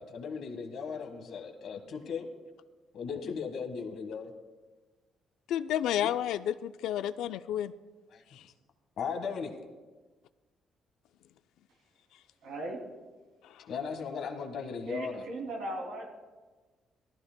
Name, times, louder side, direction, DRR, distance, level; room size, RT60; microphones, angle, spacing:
voice 1, 0.0-2.3 2.9-4.3 6.0-6.1 8.1-8.2 9.0-9.5 13.7-15.2, left 6 dB, 70° left, 5 dB, 1.5 m, -37 dB
voice 2, 5.5-7.7 8.3-8.4 13.4-13.7, left 11 dB, 90° left, 12 dB, 0.4 m, -31 dB
voice 3, 12.4-12.8 14.9-16.1, right 2 dB, 85° right, 0 dB, 2.7 m, -37 dB
18.0 x 14.5 x 2.2 m, 1.3 s
cardioid pair, 90°, 0 cm